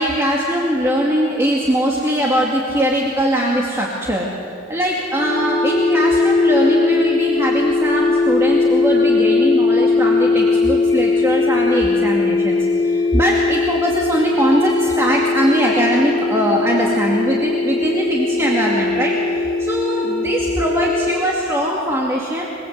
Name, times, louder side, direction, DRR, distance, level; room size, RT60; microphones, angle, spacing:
voice 1, 0.0-4.3 4.7-22.4, equal, 15° right, -3 dB, 2.3 m, -20 dB
sound 1, 5.2-21.2, left 3 dB, 55° left, 2.6 m, -19 dB
27.5 x 21.0 x 8.0 m, 2.5 s
head